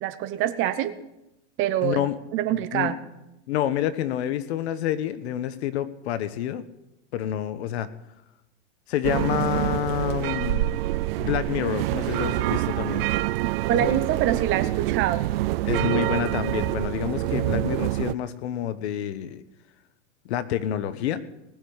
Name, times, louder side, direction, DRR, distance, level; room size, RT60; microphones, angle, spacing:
voice 1, 0.0-0.9 1.6-2.0 2.3-3.0 13.7-15.2, right 12 dB, 35° right, 11 dB, 1.1 m, -25 dB
voice 2, 1.8-2.2 2.7-2.9 3.5-6.6 7.1-7.9 8.9-10.7 11.2-13.1 13.7-14.0 15.6-19.4 20.2-21.2, left 11 dB, 65° left, 13 dB, 1.2 m, -28 dB
sound 1, 9.0-18.1, right 17 dB, 55° right, 0.5 m, -26 dB
19.5 x 6.8 x 9.7 m, 0.93 s
supercardioid pair, 145°, 35 cm